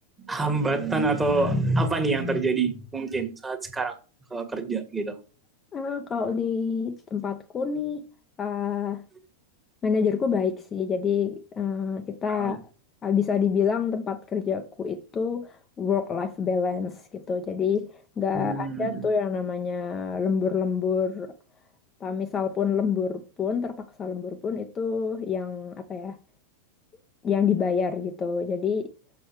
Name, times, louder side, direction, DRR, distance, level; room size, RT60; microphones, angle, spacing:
voice 1, 0.3-3.9 4.3-5.1 12.3-12.5 18.3-19.0, right 3 dB, 15° right, 1.6 m, -26 dB
voice 2, 5.7-8.1 8.4-9.0 9.8-12.7 13.0-21.3 22.0-26.2 27.2-28.9, left 6 dB, 25° left, 0.7 m, -27 dB
7.2 x 6.0 x 4.6 m
figure-of-eight pair, 90°, 0 cm